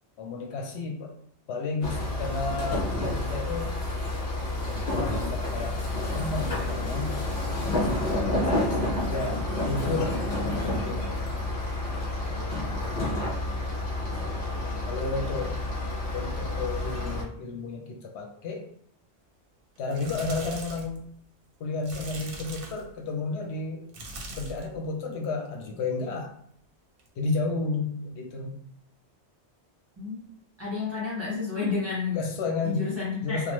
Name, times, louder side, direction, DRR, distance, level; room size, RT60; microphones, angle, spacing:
voice 1, 0.2-1.1 1.5-3.7 4.8-7.1 7.7-11.1 12.2-12.7 14.8-15.6 16.1-18.7 19.8-21.0 21.6-23.8 24.3-26.3 27.2-28.6 32.1-32.9 33.2-33.5, left 3 dB, 80° left, 2 dB, 0.9 m, -32 dB
sound 1, 1.8-17.2, left 2 dB, 50° left, 0.9 m, -29 dB
sound 2, 19.8-21.0 21.8-22.9 23.9-24.7 25.1-25.5 27.0-27.1, right 1 dB, 60° right, 0.8 m, -40 dB
voice 2, 30.0-30.3 30.6-32.2 32.6-33.4, left 5 dB, 15° right, -8 dB, 1.3 m, -30 dB
3.1 x 2.1 x 3.0 m, 0.65 s
omnidirectional pair, 1.1 m